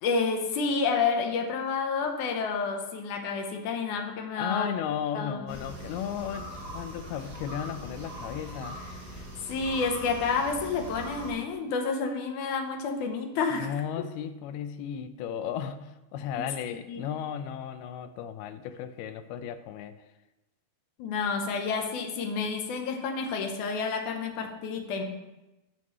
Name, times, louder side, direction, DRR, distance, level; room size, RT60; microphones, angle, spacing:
voice 1, 0.0-4.7 5.1-5.6 9.4-13.7 16.7-17.0 21.0-25.0, left 4 dB, 70° left, 3 dB, 2.0 m, -29 dB
voice 2, 4.4-9.0 13.6-20.0, left 9 dB, 90° left, 11 dB, 2.6 m, -35 dB
sound 1, 5.5-11.3, equal, 40° right, 3.8 m, -41 dB
16.0 x 6.0 x 3.1 m, 1.0 s
omnidirectional pair, 4.4 m